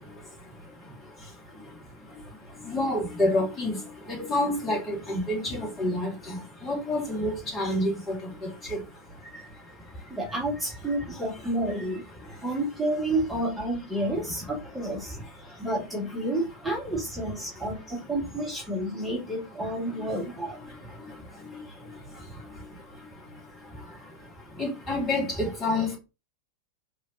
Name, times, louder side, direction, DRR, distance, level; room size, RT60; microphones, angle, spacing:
voice 1, 2.7-3.8 4.1-6.4 6.6-7.9 24.6-26.0, left 1 dB, 25° left, 2.6 m, -27 dB
voice 2, 10.1-12.0 12.4-15.2 15.6-20.6, right 1 dB, 5° right, 1.9 m, -30 dB
4.9 x 3.5 x 2.8 m
figure-of-eight pair, 90°, 0 cm